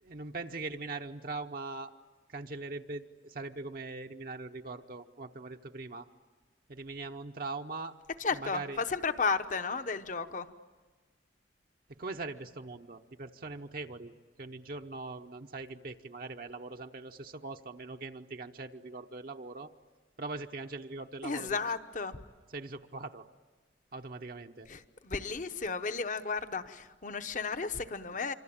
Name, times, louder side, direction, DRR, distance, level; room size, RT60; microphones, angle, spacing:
voice 1, 0.0-1.9 2.3-6.1 6.7-8.0 8.3-8.8 11.9-14.1 14.4-19.7 20.2-21.6 22.5-23.2 23.9-24.7, right 3 dB, 50° right, 4 dB, 0.8 m, -41 dB
voice 2, 8.2-10.5 21.2-22.2 24.7-28.3, left 4 dB, 45° left, 10 dB, 0.9 m, -33 dB
26.5 x 25.5 x 8.7 m, 1.3 s
head